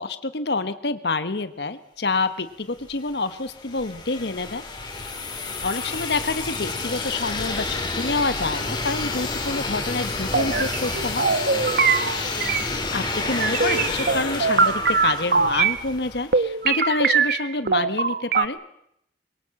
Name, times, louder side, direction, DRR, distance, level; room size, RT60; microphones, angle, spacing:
voice 1, 0.0-4.6 5.6-11.3 12.9-18.6, left 3 dB, 70° left, 12 dB, 1.1 m, -27 dB
sound 1, 2.8-16.6, left 3 dB, 25° left, 3.8 m, -30 dB
sound 2, 10.3-12.7 13.0-15.8 16.3-18.5, right 5 dB, 60° right, 1.0 m, -22 dB
24.0 x 22.0 x 7.6 m, 0.75 s
head